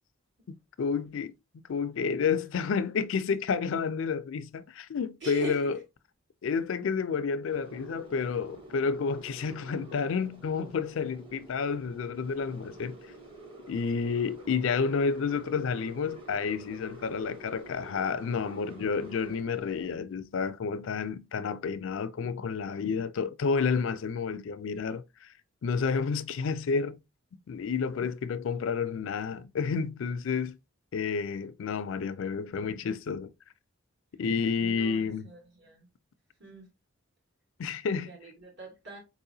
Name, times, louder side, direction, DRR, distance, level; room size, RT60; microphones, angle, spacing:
voice 1, 0.8-1.3 1.7-5.7 6.4-13.0 13.7-25.3 25.6-27.0 27.5-30.6 30.9-33.3 34.2-35.3 37.6-38.1, left 5 dB, 65° left, 0.4 m, -30 dB
voice 2, 5.2-5.7 34.6-35.9 36.4-36.7 38.0-39.0, right 3 dB, 55° right, 1.4 m, -43 dB
sound 1, 7.5-20.0, right 2 dB, 25° right, 0.9 m, -48 dB
4.2 x 2.7 x 2.6 m
head